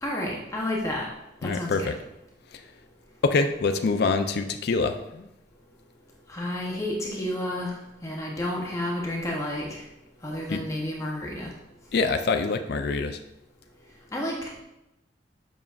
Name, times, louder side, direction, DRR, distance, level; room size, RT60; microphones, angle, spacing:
voice 1, 0.0-1.1 1.4-1.9 6.3-7.7 8.0-9.8 10.2-11.5 14.1-14.6, left 1 dB, 15° left, -2 dB, 0.7 m, -31 dB
voice 2, 1.4-1.9 3.2-5.3 10.5-10.6 11.9-13.2, left 4 dB, 60° left, 7 dB, 0.4 m, -25 dB
7.3 x 5.7 x 2.4 m, 0.89 s
head